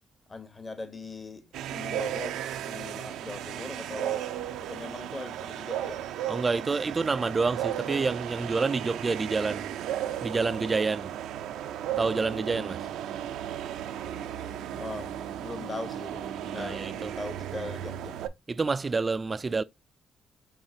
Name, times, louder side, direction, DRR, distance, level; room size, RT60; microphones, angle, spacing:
voice 1, 0.3-4.3 4.6-6.1 14.8-18.2, left 2 dB, 25° left, 1.3 m, -40 dB
sound 1, 1.5-18.3, right 11 dB, 85° right, 0.5 m, -35 dB
voice 2, 6.3-9.7 10.2-11.2 12.0-12.9 16.6-17.1 18.5-19.6, right 4 dB, 30° right, 0.3 m, -28 dB
5.6 x 3.4 x 2.7 m
cardioid pair, 90°, 0 cm